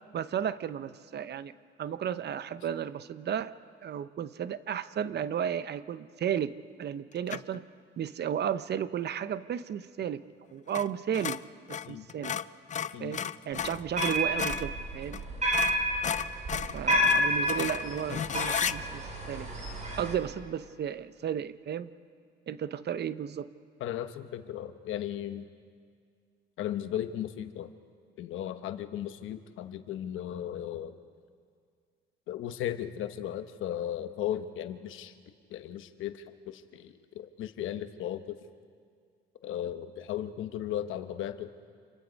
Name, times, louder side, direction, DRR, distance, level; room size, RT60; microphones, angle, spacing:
voice 1, 0.1-3.5 3.8-7.7 8.0-10.2 10.5-11.4 11.7-12.3 13.0-15.2 16.7-19.5 20.0-21.9 22.5-23.5, right 9 dB, 55° right, 14 dB, 0.8 m, -34 dB
sound 1, 7.3-7.6 10.7-10.9 11.1-14.7 15.1-15.2 15.5-18.8, left 8 dB, 40° left, 0.5 m, -34 dB
sound 2, 13.6-20.1, equal, 35° right, 4.5 m, -30 dB
voice 2, 23.8-25.5 26.6-27.7 28.2-31.0 32.3-35.1 35.5-38.4 39.4-41.5, left 11 dB, 85° left, 9 dB, 1.1 m, -36 dB
28.0 x 22.5 x 5.3 m, 2.1 s
cardioid pair, 90°, 20 cm